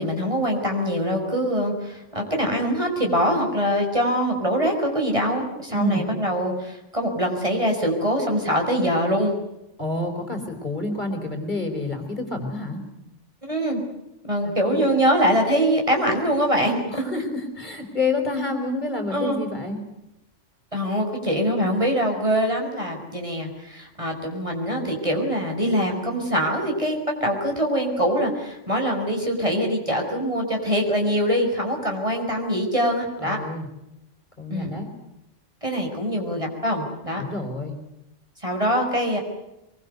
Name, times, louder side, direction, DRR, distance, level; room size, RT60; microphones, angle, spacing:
voice 1, 0.0-9.3 13.4-13.8 14.3-17.1 19.1-19.4 20.7-33.4 34.5-34.8 35.6-37.2 38.4-39.2, equal, 25° right, 2 dB, 5.9 m, -23 dB
voice 2, 5.7-6.1 9.8-12.8 14.4-14.9 16.9-19.8 33.2-33.7 34.4-34.9 37.2-37.7, left 2 dB, 40° left, 5 dB, 4.6 m, -28 dB
24.5 x 23.5 x 8.1 m, 0.86 s
omnidirectional pair, 1.3 m